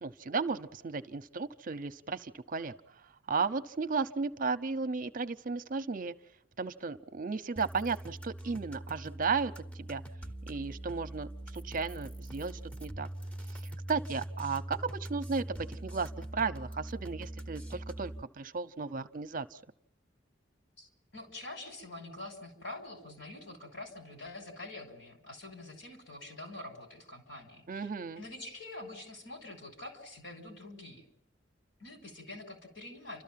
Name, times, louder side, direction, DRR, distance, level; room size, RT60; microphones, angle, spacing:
voice 1, 0.0-2.7 3.3-6.1 6.6-10.0 10.5-13.1 13.5-13.6 13.9-19.6 27.7-28.2, right 4 dB, 45° right, 11 dB, 0.7 m, -34 dB
sound 1, 7.6-18.2, right 1 dB, 5° left, 0.9 m, -42 dB
voice 2, 20.8-27.9 28.2-31.1 31.8-33.2, left 2 dB, 80° left, 4 dB, 5.5 m, -46 dB
30.0 x 13.5 x 7.5 m, 0.76 s
head